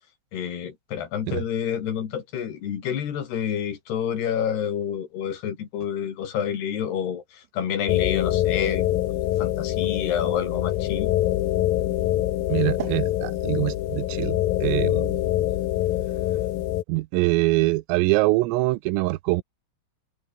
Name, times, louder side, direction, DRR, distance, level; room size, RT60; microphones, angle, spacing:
voice 1, 0.3-8.9 9.2-11.1, left 8 dB, 55° left, 4.4 m, -28 dB
sound 1, 7.9-16.8, left 14 dB, 85° left, 2.0 m, -25 dB
voice 2, 12.5-15.2 16.9-19.4, right 21 dB, 85° right, 3.4 m, -24 dB
omnidirectional pair, 5.9 m